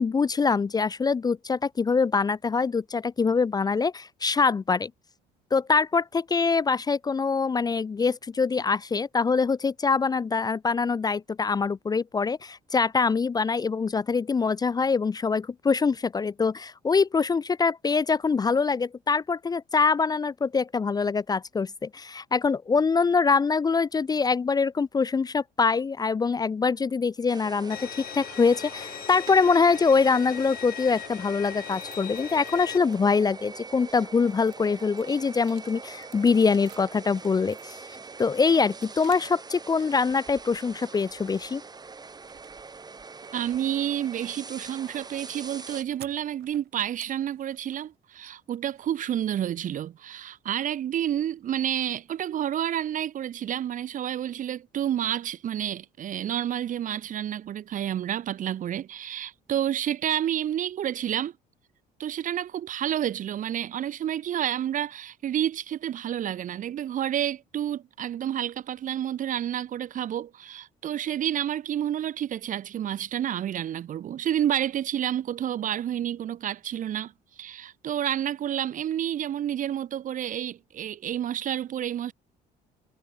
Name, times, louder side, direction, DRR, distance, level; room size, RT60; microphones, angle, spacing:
voice 1, 0.0-4.9 5.5-27.9 28.1-37.8 38.2-41.6, left 5 dB, 25° left, 0.5 m, -24 dB
sound 1, 27.3-45.8, right 4 dB, 25° right, 2.6 m, -44 dB
Bowed string instrument, 27.7-32.8, left 12 dB, 60° left, 1.3 m, -39 dB
sound 2, 31.3-33.2 33.7-39.5 39.8-40.4 40.8-41.4 41.7-49.6, right 15 dB, 75° right, 5.8 m, -55 dB
voice 2, 43.3-61.3 62.0-77.1 77.4-82.1, right 10 dB, 50° right, 1.0 m, -29 dB
cardioid pair, 110°, 17 cm